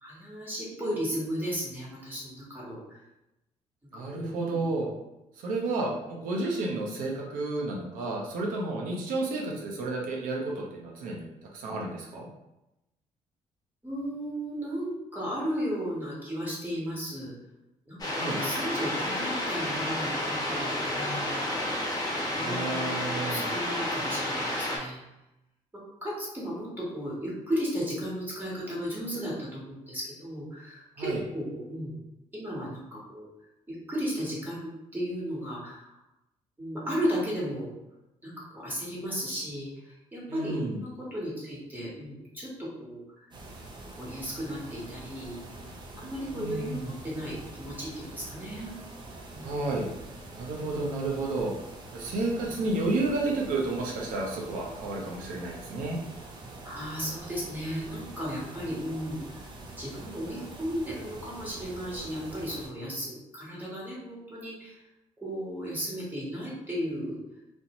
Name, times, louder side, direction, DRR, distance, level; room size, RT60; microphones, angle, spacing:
voice 1, 0.0-3.0 3.9-4.7 9.3-9.5 13.8-17.3 17.9-21.9 22.3-25.0 26.0-32.0 32.3-33.3 33.7-35.9 36.6-37.7 38.2-43.0 44.0-45.4 46.0-48.7 49.3-49.8 52.4-52.6 56.6-59.4 59.8-64.8 65.2-67.2, equal, 15° right, -6 dB, 1.2 m, -35 dB
voice 2, 3.9-4.9 5.4-12.3 18.1-18.4 22.3-23.4 31.0-31.2 40.3-40.8 46.3-46.9 49.4-49.9 50.3-51.5 51.9-56.0, right 2 dB, 90° right, -1 dB, 0.6 m, -31 dB
sound 1, 18.0-24.8, left 1 dB, 30° left, 0.8 m, -30 dB
sound 2, 43.3-62.7, right 2 dB, 35° right, 0.6 m, -45 dB
2.5 x 2.1 x 2.9 m, 0.92 s
cardioid pair, 90°, 14 cm